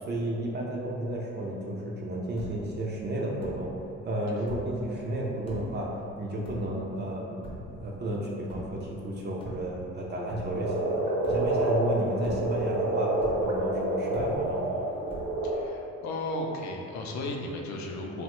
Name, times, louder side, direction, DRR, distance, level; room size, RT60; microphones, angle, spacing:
voice 1, 0.0-3.7 4.0-5.9 6.2-13.1 13.4-14.8, right 1 dB, 35° right, -3 dB, 0.4 m, -32 dB
sound 1, 2.4-2.8 3.4-3.8 4.3-4.9 5.5-5.9 6.4-7.0 7.4-7.9 8.5-8.9 9.3-10.0 10.3-10.8 11.2-11.8 12.1-12.8 13.2-13.7 14.1-14.7 15.1-15.6, equal, 20° left, 0.7 m, -42 dB
Frog, 10.5-15.6, right 2 dB, 80° right, 0.6 m, -28 dB
voice 2, 15.4-18.2, left 1 dB, 70° left, 1 dB, 0.5 m, -35 dB
2.9 x 2.1 x 2.9 m, 2.6 s
cardioid pair, 90°, 30 cm